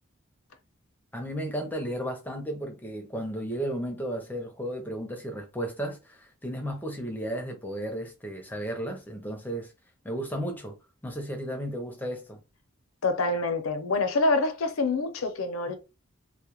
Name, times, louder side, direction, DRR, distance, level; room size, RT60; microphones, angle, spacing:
voice 1, 1.1-9.7 10.0-10.7 11.0-12.4, right 1 dB, 10° left, 0.5 m, -34 dB
voice 2, 13.0-15.7, left 3 dB, 80° left, 0.6 m, -26 dB
2.2 x 2.1 x 3.0 m
head